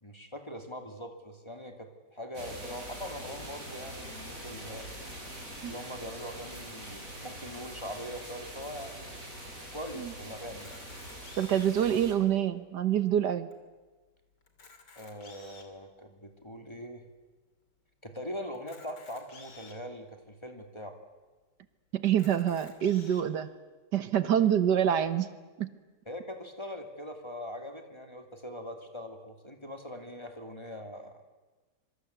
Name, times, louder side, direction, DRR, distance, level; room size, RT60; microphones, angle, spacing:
voice 1, 0.0-4.9 5.7-9.2 9.7-10.8 15.0-17.1 18.0-21.0 26.1-31.2, equal, 15° left, 5 dB, 2.6 m, -42 dB
sound 1, 2.3-12.1, right 1 dB, 50° right, 6.9 m, -44 dB
Camera, 10.5-11.9 12.5-12.6 12.8-13.0 13.5-13.6 14.4-15.8 16.4-16.5 18.5-19.8 20.5-20.6 20.9-21.0 22.1-23.2, left 3 dB, 85° left, 3.7 m, -53 dB
voice 2, 11.4-13.5 21.9-23.5 23.9-25.3 25.6-25.7, right 10 dB, 80° right, 12 dB, 1.8 m, -26 dB
26.0 x 24.0 x 8.2 m, 1.2 s
omnidirectional pair, 1.8 m